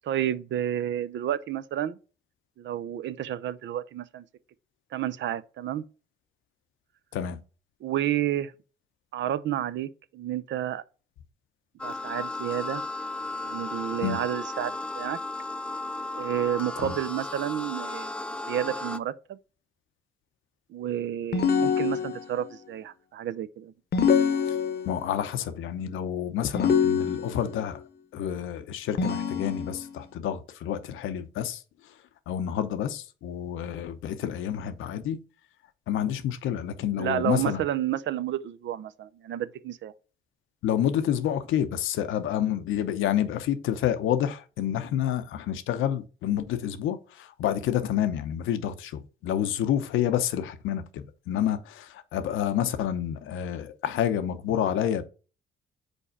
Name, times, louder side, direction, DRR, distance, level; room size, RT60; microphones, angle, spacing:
voice 1, 0.0-2.0 2.6-4.2 4.9-5.8 7.8-8.5 9.1-10.8 11.8-12.8 13.4-15.2 16.1-18.1 18.5-19.4 20.7-23.7 37.0-39.9, right 11 dB, 65° right, 0.6 m, -30 dB
sound 1, 11.8-19.0, left 2 dB, 5° left, 0.4 m, -35 dB
sound 2, 21.3-22.5 23.9-25.1 26.5-27.6 29.0-30.0, left 6 dB, 55° left, 0.9 m, -25 dB
voice 2, 24.8-27.8 28.1-31.6 32.3-35.2 35.9-37.6 40.6-55.0, left 10 dB, 85° left, 0.8 m, -29 dB
5.3 x 4.2 x 4.8 m
cardioid pair, 90°, 20 cm